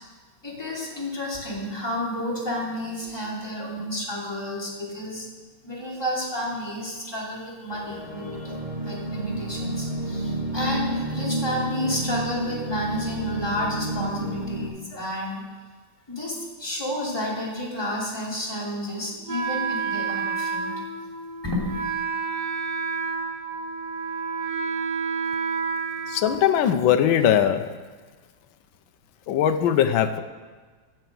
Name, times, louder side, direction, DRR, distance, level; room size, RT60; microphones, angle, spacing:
voice 1, 0.4-5.3 5.6-15.4 16.1-20.9 21.4-21.8, left 1 dB, 10° left, -5 dB, 2.9 m, -31 dB
sound 1, 7.7-14.7, right 1 dB, 30° left, 3.2 m, -30 dB
Wind instrument woodwind instrument, 19.3-27.0, right 5 dB, 55° right, 0.5 m, -30 dB
voice 2, 26.1-27.7 29.3-30.2, left 9 dB, 75° left, 8 dB, 1.5 m, -20 dB
10.5 x 7.8 x 7.8 m, 1.4 s
omnidirectional pair, 2.3 m